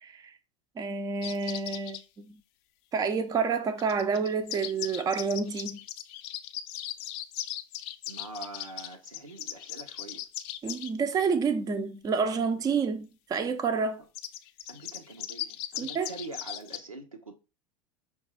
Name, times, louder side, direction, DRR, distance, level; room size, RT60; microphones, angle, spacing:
voice 1, 0.0-0.3 0.8-2.4 2.9-5.8 10.6-14.0 15.8-16.1, right 5 dB, 20° right, 0.6 m, -29 dB
sound 1, 1.2-2.0 3.8-10.9 14.2-16.8, left 13 dB, 50° left, 0.4 m, -38 dB
voice 2, 8.1-10.2 14.7-17.3, right 2 dB, 90° right, 0.8 m, -44 dB
5.3 x 2.4 x 4.1 m
figure-of-eight pair, 80°, 17 cm